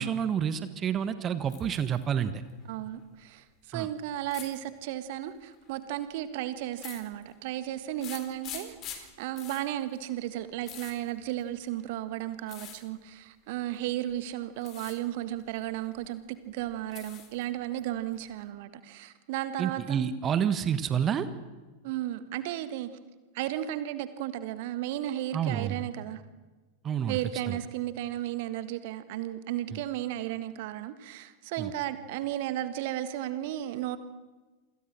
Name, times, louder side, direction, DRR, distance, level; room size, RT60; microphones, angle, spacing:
voice 1, 0.0-2.4 3.7-3.9 19.6-21.3 25.3-25.8 26.8-27.2 31.6-31.7, right 8 dB, 25° right, 12 dB, 1.4 m, -29 dB
sound 1, 1.5-2.0 2.4-3.0 4.3-4.6 5.5-5.8 6.7-7.5 8.0-11.8 12.5-12.8 13.7-14.1 14.5-15.0 15.3-16.1 16.5-17.4 17.8-18.5, left 10 dB, 35° left, 4.0 m, -45 dB
voice 2, 2.7-20.0 21.8-22.9 23.3-26.2 27.1-34.0, right 13 dB, 50° right, 12 dB, 1.6 m, -34 dB
28.0 x 25.5 x 6.3 m, 1.2 s
figure-of-eight pair, 90°, 0 cm